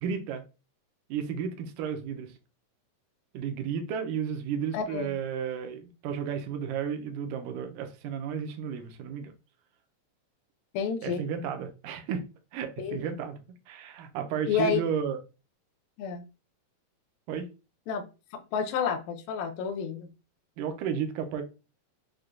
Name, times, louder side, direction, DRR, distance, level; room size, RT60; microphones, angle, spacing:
voice 1, 0.0-0.4 1.1-2.3 3.3-9.3 11.0-12.2 12.5-13.4 13.7-15.2 17.3-17.5 20.6-21.4, right 7 dB, 80° right, 2.0 m, -33 dB
voice 2, 4.7-5.2 10.7-11.3 12.8-13.1 14.5-14.8 16.0-16.2 17.9-18.1 18.3-20.1, left 6 dB, 85° left, 1.6 m, -30 dB
6.4 x 2.2 x 2.4 m
omnidirectional pair, 4.0 m